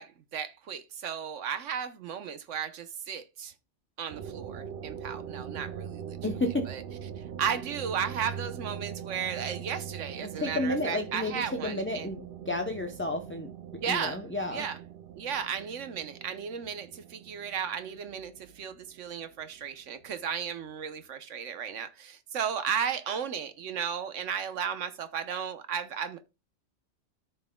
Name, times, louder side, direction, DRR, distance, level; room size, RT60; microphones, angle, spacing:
voice 1, 0.0-3.5 4.0-6.2 6.7-6.8 7.4-12.1 13.7-14.2 14.5-14.8 15.2-26.2, right 7 dB, 90° right, 1.2 m, -34 dB
sound 1, 4.1-20.4, right 8 dB, 60° right, 0.6 m, -42 dB
voice 2, 6.2-6.7 10.4-13.5 13.9-14.6, left 2 dB, 15° left, 0.5 m, -31 dB
13.5 x 5.5 x 2.2 m
omnidirectional pair, 1.2 m